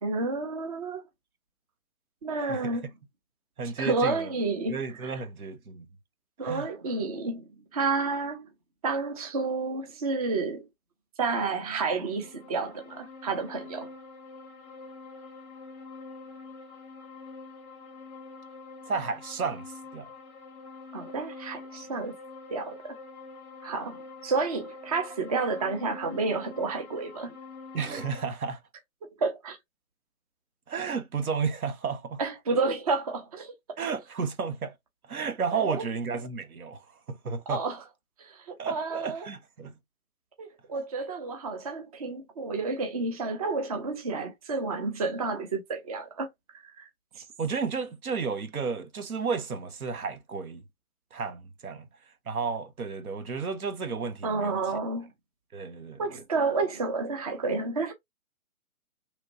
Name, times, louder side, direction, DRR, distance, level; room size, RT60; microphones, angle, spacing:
voice 1, 0.0-1.0 2.2-2.9 3.8-5.2 6.4-7.4 7.7-8.5 8.8-10.7 11.2-13.9 20.9-22.2 22.5-23.0 23.6-27.4 29.2-29.6 32.2-33.5 35.5-35.9 37.5-37.8 38.2-39.3 40.4-46.3 46.6-46.9 47.2-47.3 54.2-55.1 56.0-57.9, right 3 dB, 30° right, 0.4 m, -30 dB
voice 2, 3.6-4.3 4.7-5.9 6.4-6.7 18.9-20.1 27.7-28.6 30.7-32.2 33.8-34.7 35.1-36.8 37.1-37.6 38.6-39.7 47.4-50.6 51.1-51.9 52.3-54.6 55.5-56.0, right 5 dB, 80° right, 0.8 m, -32 dB
sound 1, 11.9-28.3, left 3 dB, 20° left, 0.6 m, -46 dB
3.0 x 2.4 x 2.5 m
figure-of-eight pair, 135°, 42 cm